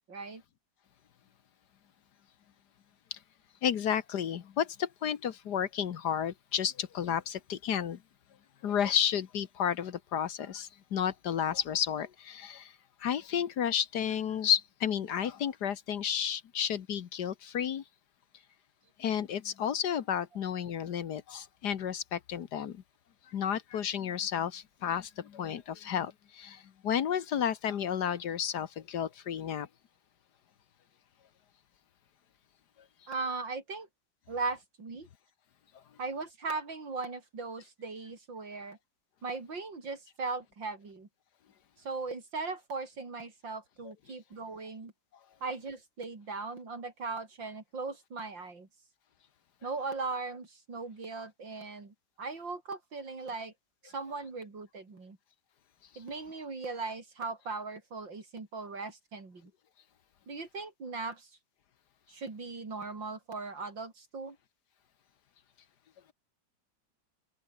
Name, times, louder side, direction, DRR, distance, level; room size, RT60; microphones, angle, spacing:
voice 1, 0.1-0.4 33.1-33.9 34.3-35.1 36.0-38.8 39.2-41.1 41.8-44.9 45.4-48.7 49.6-53.5 53.8-55.2 56.0-59.5 60.3-61.3 62.1-64.4, right 4 dB, 80° right, 4.9 m, -38 dB
voice 2, 3.6-8.0 8.6-12.7 13.0-17.8 19.0-22.8 23.3-29.7, left 9 dB, 65° left, 1.6 m, -32 dB
omnidirectional pair, 2.0 m